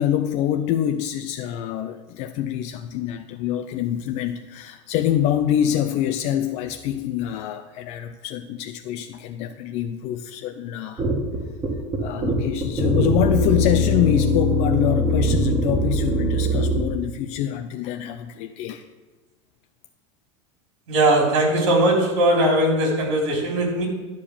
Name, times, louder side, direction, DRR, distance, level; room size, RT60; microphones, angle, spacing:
voice 1, 0.0-11.1 12.0-18.8, left 11 dB, 45° left, 7 dB, 0.5 m, -25 dB
sound 1, 11.0-16.9, equal, 20° right, 1.6 m, -22 dB
voice 2, 20.9-23.9, right 1 dB, 80° right, 0 dB, 3.5 m, -19 dB
10.5 x 4.9 x 7.1 m, 1.2 s
supercardioid pair, 145°, 16 cm